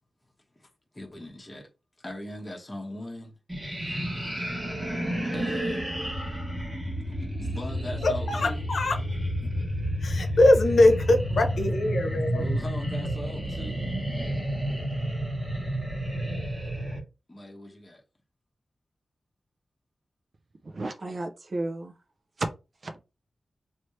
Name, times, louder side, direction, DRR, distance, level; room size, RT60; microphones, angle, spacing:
voice 1, 0.9-1.7 2.0-3.4 5.3-5.8 7.1-8.7 12.1-13.8 17.3-18.0, left 1 dB, 20° left, 1.2 m, -40 dB
sound 1, 3.5-17.0, equal, 25° right, 1.5 m, -30 dB
voice 2, 8.0-9.0 10.0-12.4, left 2 dB, 70° left, 0.9 m, -22 dB
voice 3, 20.6-21.9 22.4-22.5 22.8-23.0, right 2 dB, 45° right, 0.6 m, -32 dB
3.2 x 2.7 x 3.1 m
wide cardioid pair, 130°, 0 cm